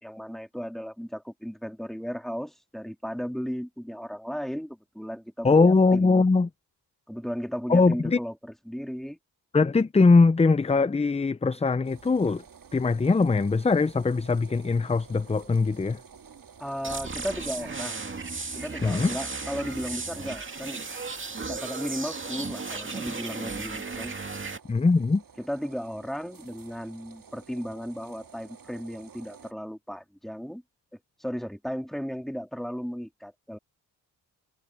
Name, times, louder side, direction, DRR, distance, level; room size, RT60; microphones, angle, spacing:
voice 1, 0.0-6.2 7.1-9.2 16.6-18.0 18.5-20.8 21.5-24.1 25.4-30.6 31.2-33.6, equal, ahead, 3.5 m, -35 dB
voice 2, 5.4-6.5 7.7-8.2 9.5-12.4 12.7-16.0 18.8-19.2 24.7-25.2, left 4 dB, 15° left, 0.6 m, -21 dB
sound 1, 11.8-29.5, right 6 dB, 55° right, 2.6 m, -51 dB
sound 2, 16.8-24.6, right 4 dB, 30° right, 2.3 m, -35 dB
cardioid pair, 60°, 39 cm